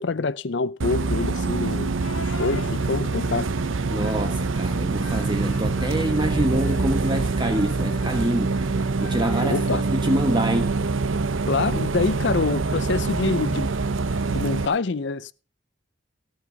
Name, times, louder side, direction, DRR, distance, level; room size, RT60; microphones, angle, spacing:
voice 1, 0.0-1.9 2.4-3.5 3.9-4.0 9.4-9.8 11.5-13.7 14.3-15.3, left 4 dB, 60° left, 0.6 m, -26 dB
Bus, 0.8-14.7, right 3 dB, 75° right, 0.7 m, -25 dB
sound 1, 1.0-10.2, left 4 dB, 90° left, 1.2 m, -42 dB
voice 2, 3.9-10.7, right 1 dB, 25° right, 1.1 m, -26 dB
18.0 x 6.1 x 5.3 m
head